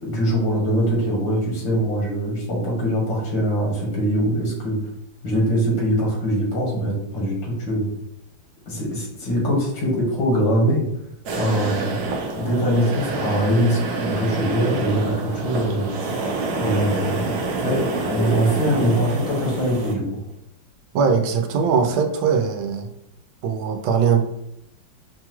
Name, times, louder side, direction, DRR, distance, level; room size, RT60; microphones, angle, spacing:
voice 1, 0.0-4.8 5.2-7.9 8.7-10.9 11.4-12.0 12.3-15.9 16.6-20.2, equal, 80° left, -3 dB, 2.2 m, -22 dB
sound 1, 11.3-19.9, right 3 dB, 65° right, 1.0 m, -27 dB
voice 2, 20.9-22.9 23.4-24.2, right 6 dB, 90° right, 5 dB, 1.4 m, -20 dB
5.5 x 2.3 x 3.0 m, 0.79 s
omnidirectional pair, 2.1 m